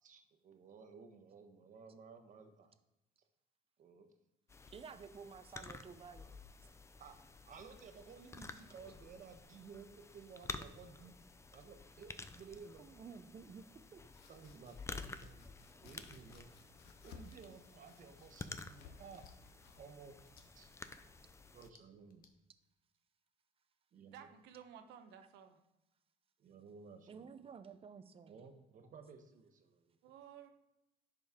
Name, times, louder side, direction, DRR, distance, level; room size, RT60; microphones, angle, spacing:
voice 1, 0.0-2.7 3.8-4.1 7.0-7.2 7.5-11.1 11.5-12.8 14.3-15.5 15.8-16.5 17.0-19.2 19.8-20.2 20.5-20.7 21.5-22.2 23.9-24.3 26.4-27.3 28.3-30.0, right 5 dB, 50° right, 6 dB, 1.2 m, -55 dB
sound 1, 4.5-21.7, left 3 dB, 15° left, 0.5 m, -52 dB
voice 2, 4.7-6.3 12.8-14.0 15.9-16.0 27.1-28.4, right 6 dB, 35° right, 10 dB, 0.7 m, -53 dB
Domestic sounds home sounds, 13.8-21.5, left 5 dB, 85° left, 0.9 m, -61 dB
sound 2, 15.2-15.3 16.2-16.5 17.3-17.5 18.4-18.7 19.1-19.3 20.2-20.5 21.5-22.3, left 6 dB, 60° left, 1.1 m, -66 dB
voice 3, 24.0-25.6 30.0-30.5, right 9 dB, 85° right, 7 dB, 1.0 m, -55 dB
10.5 x 5.3 x 3.7 m, 0.92 s
cardioid pair, 110°, 17 cm